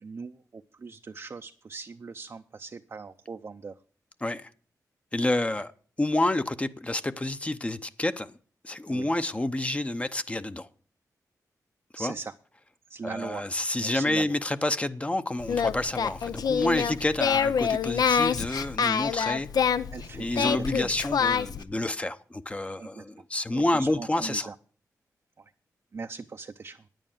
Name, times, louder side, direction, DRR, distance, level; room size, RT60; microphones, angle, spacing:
voice 1, 0.0-3.7 8.9-9.1 11.9-12.3 12.9-13.5 13.8-14.3 19.9-20.5 22.8-23.0 23.5-24.5 25.4-25.5 25.9-26.9, right 4 dB, 45° right, 0.6 m, -39 dB
voice 2, 4.2-4.5 5.1-5.7 6.0-8.4 8.6-10.7 12.0-12.1 13.0-19.5 20.1-24.5, left 1 dB, 20° left, 0.7 m, -29 dB
Singing, 15.4-21.6, left 7 dB, 75° left, 0.6 m, -26 dB
9.9 x 9.1 x 7.3 m
wide cardioid pair, 105°, 7 cm